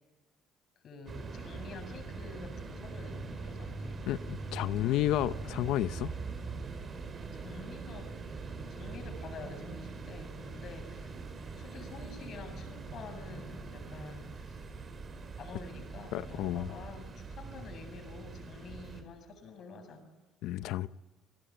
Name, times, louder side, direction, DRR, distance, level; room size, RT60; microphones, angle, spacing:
voice 1, 0.8-4.0 7.3-8.1 8.5-14.6 15.4-20.1, left 4 dB, 55° left, 7.5 m, -48 dB
sound 1, 1.1-19.0, right 4 dB, 40° right, 5.7 m, -42 dB
voice 2, 4.1-6.1 16.1-16.7 20.4-20.9, left 14 dB, 80° left, 0.8 m, -31 dB
29.5 x 19.5 x 8.9 m
cardioid pair, 100°, 0 cm